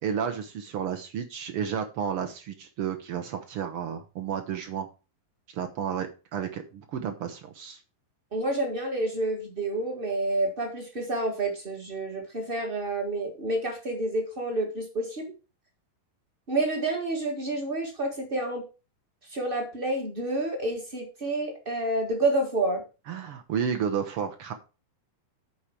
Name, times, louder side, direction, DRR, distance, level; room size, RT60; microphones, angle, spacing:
voice 1, 0.0-4.9 5.5-7.8 23.1-24.5, right 8 dB, 70° right, 6 dB, 1.3 m, -32 dB
voice 2, 8.3-15.3 16.5-18.6 19.3-22.8, right 2 dB, 35° right, 3 dB, 0.9 m, -29 dB
8.7 x 4.9 x 7.6 m, 0.32 s
omnidirectional pair, 4.0 m